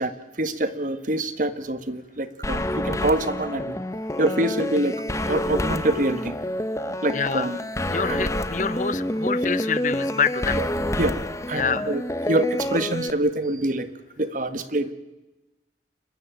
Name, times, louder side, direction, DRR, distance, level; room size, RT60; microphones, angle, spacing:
voice 1, 0.0-3.8 4.2-6.3 7.0-7.6 8.1-8.3 10.6-10.7 11.0-11.1 11.5-13.9 14.2-14.9, right 1 dB, 50° right, 11 dB, 1.6 m, -25 dB
sound 1, 2.4-13.1, left 1 dB, 15° left, 1.0 m, -28 dB
voice 2, 7.1-7.4 7.9-10.6 11.5-11.9, left 5 dB, 45° left, 16 dB, 1.0 m, -26 dB
30.0 x 13.5 x 9.2 m, 1.1 s
head